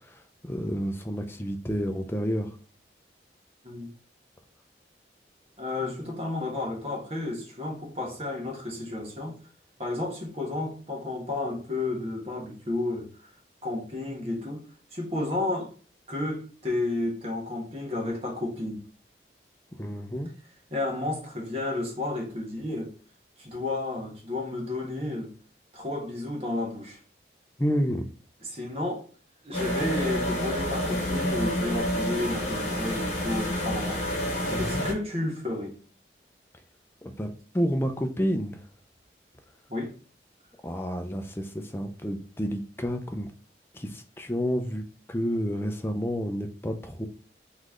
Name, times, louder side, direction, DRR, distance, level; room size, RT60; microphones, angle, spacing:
voice 1, 0.4-2.5 19.8-20.3 27.6-28.0 34.5-34.8 37.0-38.6 40.6-43.3 43.7-44.8 45.1-47.1, equal, 15° left, 0.5 m, -30 dB
voice 2, 5.6-9.4 9.8-13.1 13.6-14.7 14.9-15.7 16.1-18.9 20.7-22.9 23.4-25.3 25.7-27.0 28.4-29.0 29.4-34.1 34.6-35.7 39.7-39.9, left 2 dB, 35° right, 1.3 m, -32 dB
sound 1, 29.5-34.9, equal, 40° left, 1.4 m, -28 dB
4.0 x 3.2 x 3.6 m
head